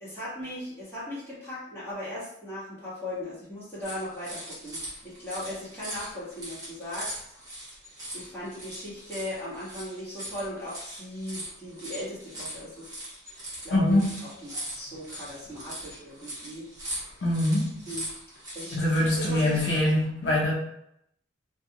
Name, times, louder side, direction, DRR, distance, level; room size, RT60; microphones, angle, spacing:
voice 1, 0.0-7.2 8.1-12.9 13.3-14.0 14.4-16.6 17.0-17.2 17.9-18.1 18.5-18.8 19.1-19.6, left 1 dB, 15° left, -11 dB, 1.3 m, -38 dB
sound 1, 3.8-19.0, right 1 dB, 20° right, 0.8 m, -40 dB
voice 2, 13.7-14.1 17.2-17.8 18.7-20.5, left 1 dB, 65° left, -5 dB, 0.6 m, -24 dB
2.6 x 2.3 x 2.8 m, 0.75 s
head